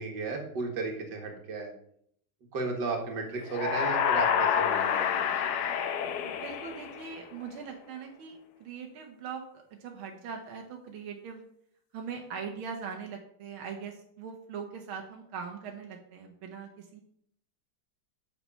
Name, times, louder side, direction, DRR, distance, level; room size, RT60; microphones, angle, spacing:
voice 1, 0.0-1.7 2.5-5.3, right 3 dB, 60° right, 2 dB, 2.2 m, -34 dB
sound 1, 3.5-7.3, left 8 dB, 65° left, 1.2 m, -28 dB
voice 2, 6.2-11.4 11.9-17.0, right 6 dB, 85° right, 2 dB, 1.8 m, -41 dB
7.3 x 6.8 x 5.4 m, 0.69 s
omnidirectional pair, 2.2 m